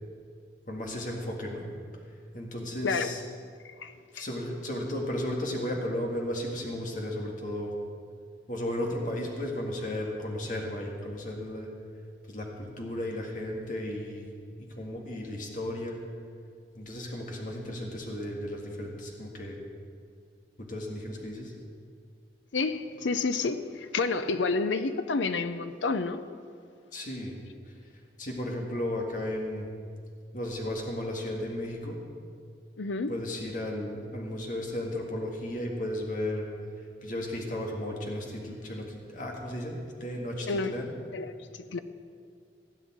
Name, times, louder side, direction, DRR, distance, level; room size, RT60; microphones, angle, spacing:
voice 1, 0.7-1.7 2.3-3.2 4.1-7.7 8.5-11.7 12.3-14.3 14.8-16.0 16.7-19.6 20.6-21.5 26.9-27.4 27.7-27.8 28.2-29.7 30.3-32.0 33.1-36.5 37.0-40.9, left 1 dB, 45° left, 0 dB, 1.9 m, -34 dB
voice 2, 3.6-4.2 22.5-26.2 32.8-33.1 40.5-40.7 41.1-41.3 41.7-41.8, left 4 dB, 85° left, 10 dB, 0.6 m, -29 dB
16.5 x 5.6 x 10.0 m, 2.2 s
head